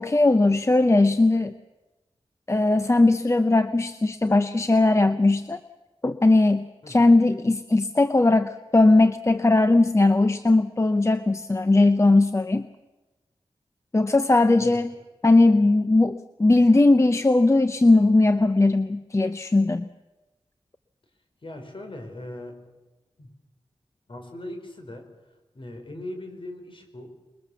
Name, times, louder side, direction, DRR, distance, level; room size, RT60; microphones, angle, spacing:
voice 1, 0.0-1.5 2.5-5.6 6.0-12.7 13.9-14.9 15.2-19.9, left 2 dB, 25° left, 10 dB, 0.8 m, -19 dB
voice 2, 21.4-22.6 23.2-23.3 24.1-25.1 25.5-27.1, left 1 dB, 50° left, 5 dB, 4.8 m, -39 dB
28.0 x 21.5 x 7.1 m, 1.1 s
wide cardioid pair, 85°, 11 cm